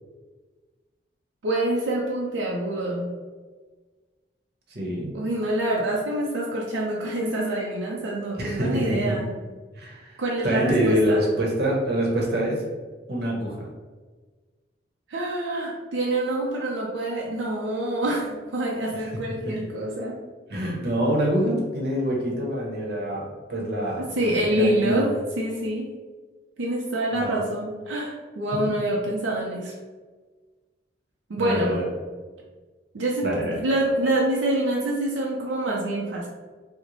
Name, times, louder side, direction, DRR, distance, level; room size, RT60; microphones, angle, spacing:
voice 1, 1.4-3.1 5.1-9.3 10.2-11.2 15.1-20.2 24.0-25.1 25.4-25.9 26.6-29.7 31.3-31.9 32.9-36.3, right 1 dB, 85° right, -3 dB, 0.5 m, -26 dB
voice 2, 4.7-5.1 8.4-9.2 9.7-12.6 13.1-13.7 19.4-19.5 20.5-25.1 27.1-27.4 31.4-31.9 33.2-33.6, equal, 55° right, -3 dB, 0.9 m, -25 dB
3.1 x 2.1 x 3.8 m, 1.4 s
head